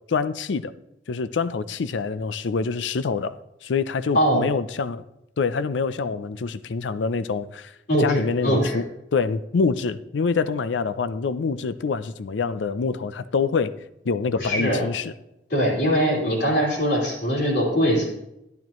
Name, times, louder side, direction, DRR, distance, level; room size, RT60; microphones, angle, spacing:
voice 1, 0.1-0.7 1.1-5.0 5.4-7.7 8.0-8.8 9.1-13.8 14.0-15.1, left 4 dB, 80° left, 0.5 m, -26 dB
voice 2, 4.1-4.5 7.9-8.8 14.4-14.9 15.5-18.1, equal, 65° left, 3.6 m, -22 dB
12.0 x 10.5 x 3.0 m
head